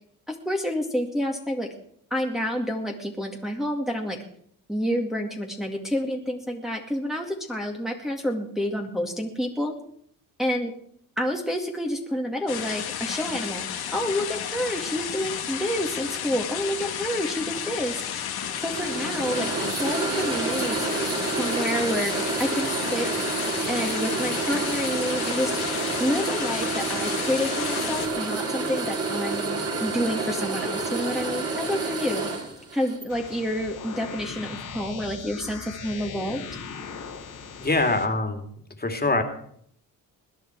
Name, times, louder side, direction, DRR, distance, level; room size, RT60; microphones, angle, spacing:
voice 1, 0.3-1.7 2.1-4.2 4.7-9.8 10.4-10.7 11.2-13.6 13.9-18.0 18.6-20.8 21.4-22.1 22.4-23.1 23.7-25.5 26.0-32.3 32.7-36.4, equal, ahead, 0 dB, 2.1 m, -29 dB
sound 1, 12.5-28.1, left 9 dB, 75° left, 2.0 m, -32 dB
sound 2, 17.5-33.1, right 3 dB, 40° right, 4.7 m, -29 dB
sound 3, 33.1-38.1, left 5 dB, 55° left, 2.4 m, -39 dB
voice 2, 37.6-38.4 38.8-39.2, left 2 dB, 25° left, 5 dB, 2.8 m, -23 dB
21.0 x 10.0 x 4.7 m, 0.65 s
supercardioid pair, 65°, 38 cm